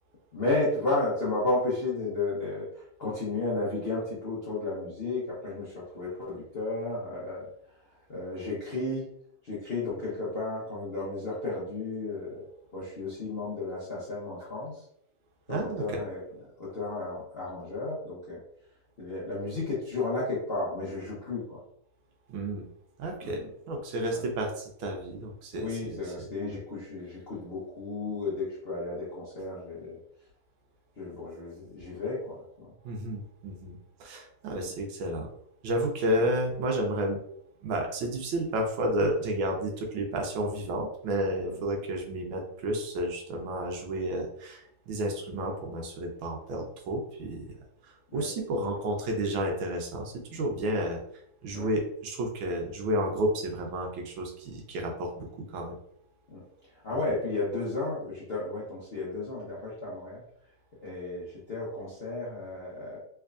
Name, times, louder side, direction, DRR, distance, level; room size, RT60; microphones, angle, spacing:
voice 1, 0.3-7.5 8.1-9.1 9.4-12.4 12.7-14.8 15.5-16.2 16.6-18.4 19.0-21.6 23.2-23.5 24.1-24.2 25.5-30.0 31.0-32.7 34.5-34.7 41.4-41.7 48.1-48.3 48.6-48.7 50.3-50.4 51.5-51.7 56.3-56.4 56.7-60.2 60.8-63.0, left 2 dB, 55° left, -8 dB, 0.6 m, -33 dB
voice 2, 15.5-16.0 22.3-22.7 23.0-26.6 32.8-33.7 34.0-35.3 35.6-37.2 37.6-47.4 48.1-51.0 51.4-55.8, right 1 dB, 75° right, 2 dB, 1.4 m, -31 dB
3.4 x 3.3 x 2.4 m, 0.72 s
omnidirectional pair, 2.2 m